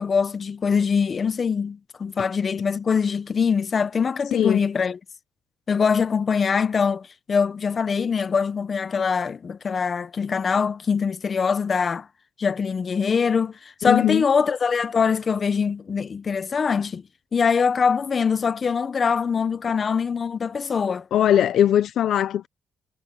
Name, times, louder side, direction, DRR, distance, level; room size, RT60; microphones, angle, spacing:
voice 1, 0.0-5.0 5.7-12.1 12.4-17.0 17.3-21.1, left 6 dB, 40° left, 1.3 m, -23 dB
voice 2, 4.3-4.6 13.8-14.2 21.1-22.5, left 10 dB, 70° left, 0.8 m, -20 dB
cardioid pair, 90°, 0 cm